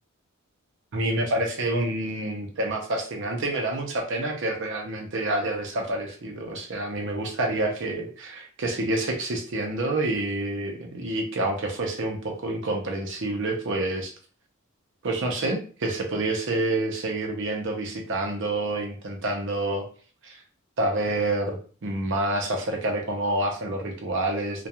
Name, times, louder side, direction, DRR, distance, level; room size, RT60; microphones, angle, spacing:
voice 1, 0.9-14.1 15.0-19.9 20.2-20.4 20.8-24.7, right 2 dB, 55° right, 3 dB, 0.6 m, -28 dB
2.3 x 2.2 x 2.8 m, 0.42 s
head